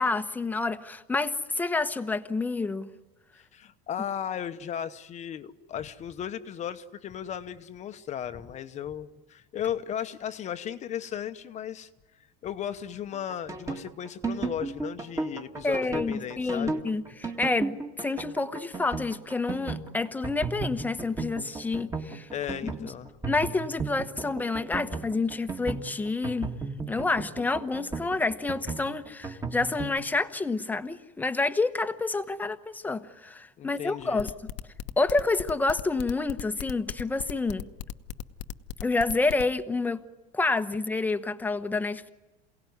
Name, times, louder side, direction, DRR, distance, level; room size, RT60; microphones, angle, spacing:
voice 1, 0.0-2.9 15.6-22.3 22.6-22.9 23.3-26.5 26.9-34.3 35.0-37.7 38.8-40.0 40.3-42.1, left 3 dB, 10° left, 10 dB, 1.0 m, -28 dB
voice 2, 3.3-11.9 12.1-16.8 22.3-23.1 33.6-34.2, left 9 dB, 35° left, 9 dB, 1.0 m, -36 dB
sound 1, 13.1-30.0, right 3 dB, 15° right, 2.1 m, -34 dB
sound 2, 34.2-39.4, left 12 dB, 70° left, 1.0 m, -37 dB
28.0 x 18.0 x 9.5 m, 1.1 s
cardioid pair, 145°, 20 cm